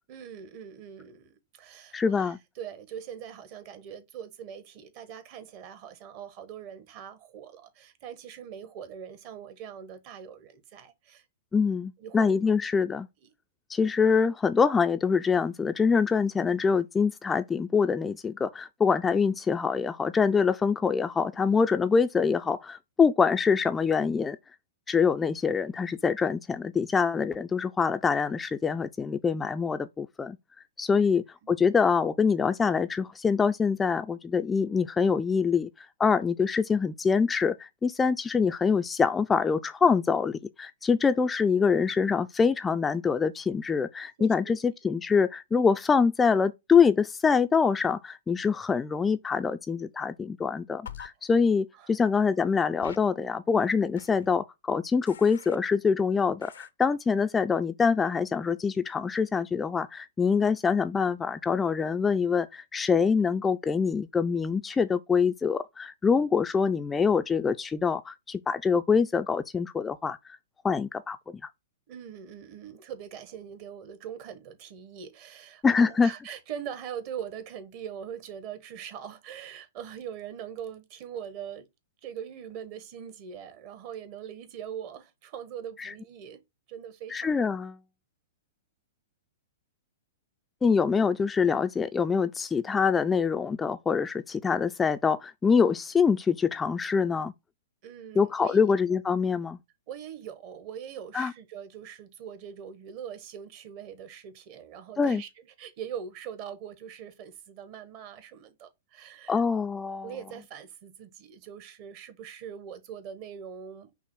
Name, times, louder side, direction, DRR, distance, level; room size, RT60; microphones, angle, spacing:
voice 1, 0.1-11.3 12.0-12.3 13.2-13.3 13.8-13.9 30.9-31.1 31.4-31.5 44.2-44.6 51.7-51.9 71.9-81.7 82.0-86.4 86.7-87.4 97.8-98.7 99.9-109.4 110.0-113.9, right 8 dB, 45° right, 1.0 m, -42 dB
voice 2, 1.9-2.4 11.5-13.1 13.7-24.4 24.9-30.4 30.8-70.2 70.6-71.2 75.6-76.1 85.8-85.9 87.1-87.8 90.6-97.3 98.2-99.6 101.1-101.3 105.0-105.2 109.3-110.1, left 5 dB, 15° left, 0.3 m, -25 dB
sound 1, 50.9-51.1 52.8-53.0 54.0-54.3 55.1-55.6 56.4-56.7, left 8 dB, 80° left, 0.5 m, -44 dB
5.8 x 2.0 x 4.4 m
hypercardioid pair, 120°, 0 cm